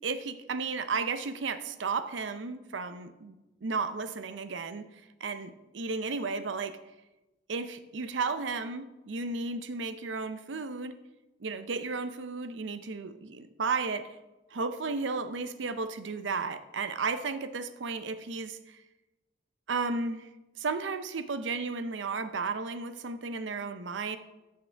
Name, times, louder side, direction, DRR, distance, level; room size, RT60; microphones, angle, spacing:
voice 1, 0.0-3.3 3.6-4.9 5.2-6.8 7.5-10.9 11.4-14.2 14.5-18.8 19.7-20.3 20.6-24.2, right 4 dB, 90° right, 11 dB, 0.6 m, -33 dB
13.5 x 6.6 x 3.4 m, 1.1 s
head